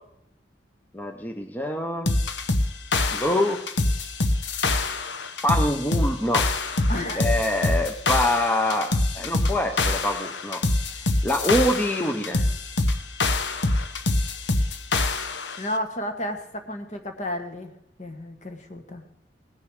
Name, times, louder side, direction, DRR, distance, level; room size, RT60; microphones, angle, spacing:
voice 1, 0.9-2.1 3.1-3.6 5.4-6.4 7.2-10.6 11.2-12.4, left 1 dB, 10° left, 4 dB, 0.7 m, -25 dB
sound 1, 2.1-15.6, left 2 dB, 85° left, 0.9 m, -25 dB
voice 2, 6.9-7.3 15.6-17.7 18.0-19.0, left 1 dB, 45° left, 6 dB, 1.6 m, -32 dB
18.5 x 6.5 x 6.5 m, 0.74 s
head